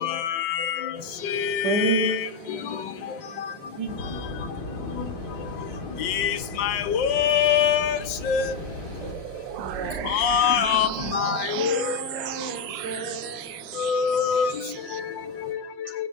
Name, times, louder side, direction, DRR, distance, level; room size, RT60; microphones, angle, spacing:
voice 1, 0.0-0.8 1.3-2.1 6.0-6.3 6.6-8.0 8.3-8.4 10.1-10.9 11.1-11.9 13.8-14.5, left 8 dB, 85° left, 1.5 m, -23 dB
sound 1, 0.9-15.5, right 2 dB, 55° right, 3.8 m, -45 dB
voice 2, 1.6-4.3 9.6-10.2 10.8-11.6 12.5-12.6, right 3 dB, 70° right, 1.7 m, -31 dB
sound 2, 3.9-9.1, left 2 dB, 65° left, 2.2 m, -36 dB
sound 3, 9.0-15.0, right 11 dB, 90° right, 0.6 m, -35 dB
voice 3, 10.4-13.9, right 3 dB, 35° right, 4.2 m, -38 dB
20.0 x 8.1 x 2.5 m
omnidirectional pair, 1.9 m